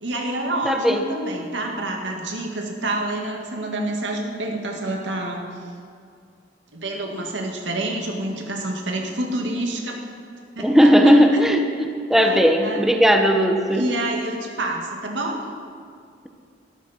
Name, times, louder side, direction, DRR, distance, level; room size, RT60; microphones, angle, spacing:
voice 1, 0.0-5.4 6.7-10.1 10.6-11.1 12.2-12.9 13.7-15.4, right 1 dB, 90° right, 1 dB, 2.0 m, -28 dB
voice 2, 0.6-1.0 10.6-13.8, equal, ahead, 4 dB, 0.8 m, -17 dB
20.0 x 12.5 x 4.4 m, 2.3 s
head